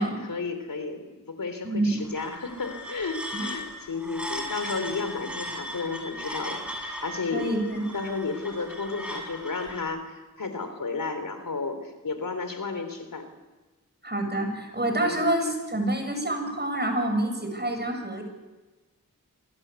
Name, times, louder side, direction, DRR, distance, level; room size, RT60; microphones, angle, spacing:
voice 1, 0.0-7.5 7.9-13.3 15.0-15.2, left 4 dB, 80° left, 8 dB, 3.6 m, -33 dB
voice 2, 1.6-2.0 3.3-3.5 7.3-7.9 14.0-18.2, right 1 dB, 30° right, 5 dB, 6.9 m, -27 dB
sound 1, 2.0-9.8, equal, 5° right, 7.5 m, -37 dB
25.5 x 21.5 x 8.3 m, 1.2 s
wide cardioid pair, 60°, 33 cm